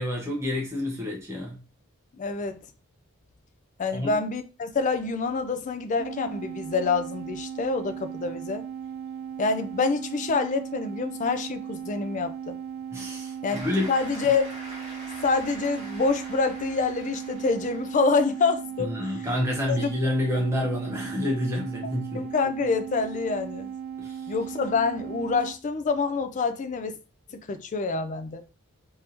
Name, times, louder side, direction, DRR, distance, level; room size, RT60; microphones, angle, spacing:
voice 1, 0.0-1.6 3.9-4.1 12.9-13.9 18.8-22.2 24.0-24.3, left 1 dB, 10° right, 1.0 m, -28 dB
voice 2, 2.1-2.6 3.8-8.7 9.4-12.6 13.4-14.4 15.2-19.3 19.7-19.9 21.8-23.7 24.3-27.0 27.3-28.4, left 4 dB, 35° left, 0.3 m, -27 dB
sound 1, 6.0-25.6, right 8 dB, 70° right, 0.6 m, -37 dB
Cheering / Applause, 13.5-18.4, equal, 35° right, 1.5 m, -44 dB
3.4 x 2.6 x 2.9 m
head